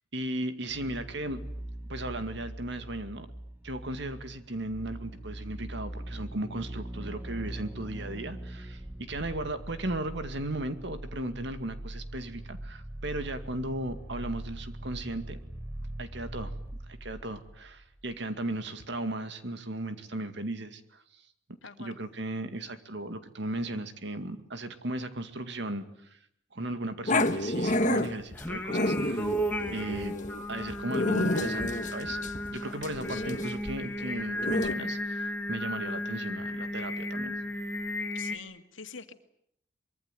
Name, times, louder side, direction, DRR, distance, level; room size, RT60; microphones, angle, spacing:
voice 1, 0.1-1.4 1.9-3.3 3.6-15.4 16.0-16.5 16.9-21.2 21.8-26.2 26.5-29.3 29.7-30.2 30.5-32.2 32.5-37.4, right 1 dB, 65° right, 9 dB, 2.3 m, -36 dB
sound 1, 0.7-18.2 18.5-18.6, right 1 dB, 10° right, 1.6 m, -41 dB
voice 2, 21.6-22.0 33.1-33.4 38.1-39.1, left 6 dB, 80° left, 7 dB, 2.2 m, -45 dB
Growling, 27.1-34.7, left 2 dB, 40° left, 1.5 m, -30 dB
Singing, 28.3-38.4, left 1 dB, 10° left, 2.3 m, -34 dB
24.5 x 23.0 x 9.3 m, 0.72 s
head